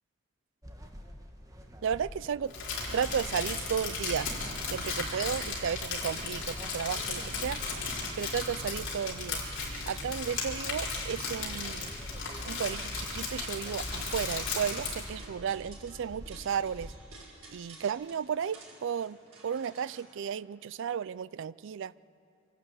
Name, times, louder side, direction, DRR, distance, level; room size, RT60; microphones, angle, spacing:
sound 1, 0.6-17.0, equal, 15° right, 1.4 m, -48 dB
voice 1, 1.8-2.5 2.9-4.4 4.7-7.6 8.2-9.4 9.9-11.9 12.5-16.9 17.5-19.2 19.4-21.9, right 7 dB, 60° right, 19 dB, 0.4 m, -33 dB
Crumpling crinkling, 2.5-15.1, left 4 dB, 60° left, 4.3 m, -36 dB
sound 2, 8.6-20.0, right 3 dB, 85° right, 6.1 m, -53 dB
25.0 x 12.0 x 8.7 m, 2.6 s
head